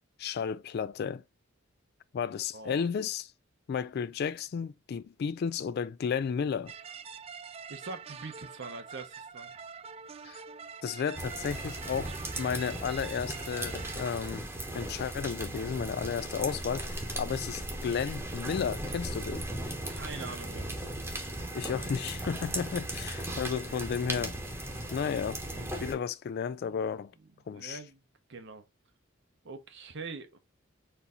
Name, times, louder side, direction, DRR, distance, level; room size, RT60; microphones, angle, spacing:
voice 1, 0.2-1.2 2.1-3.3 3.7-6.7 10.2-10.4 10.8-14.5 14.7-19.5 21.5-24.4 24.9-25.4 25.8-27.1 27.5-27.8, left 6 dB, 50° left, 0.3 m, -33 dB
voice 2, 2.5-2.8 7.7-9.6 17.1-17.4 19.9-21.0 25.5-26.0 26.7-26.8 27.5-28.0 28.3-28.6 29.4-30.4, right 4 dB, 60° right, 0.8 m, -44 dB
sound 1, 6.7-14.0, right 6 dB, 30° right, 0.3 m, -45 dB
sound 2, 11.1-25.9, right 1 dB, 10° right, 0.9 m, -37 dB
4.4 x 2.7 x 3.7 m
head